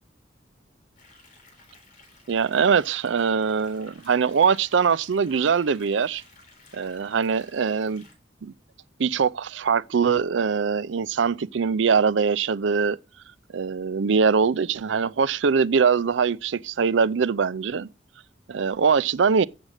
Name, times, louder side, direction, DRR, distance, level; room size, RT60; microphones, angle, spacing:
sound 1, 1.0-8.1, left 3 dB, 45° left, 3.5 m, -54 dB
voice 1, 2.3-6.2 6.7-8.0 8.4-8.5 9.0-13.0 13.5-17.9 18.5-19.5, right 5 dB, 80° right, 0.5 m, -22 dB
7.9 x 7.4 x 6.5 m
head